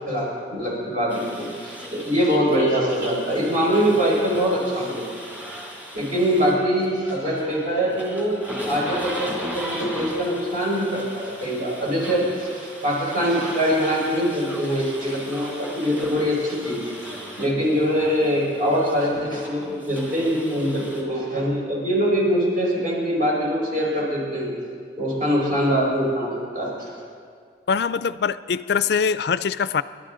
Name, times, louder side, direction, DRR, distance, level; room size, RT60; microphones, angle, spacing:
voice 1, 0.0-5.1 5.9-8.4 8.6-16.9 17.4-24.5 25.0-26.9, equal, 50° right, -4 dB, 4.9 m, -23 dB
sound 1, 1.1-21.0, equal, 10° right, 2.2 m, -37 dB
voice 2, 27.7-29.8, left 6 dB, 65° left, 15 dB, 0.4 m, -23 dB
27.0 x 12.0 x 3.8 m, 2.1 s
head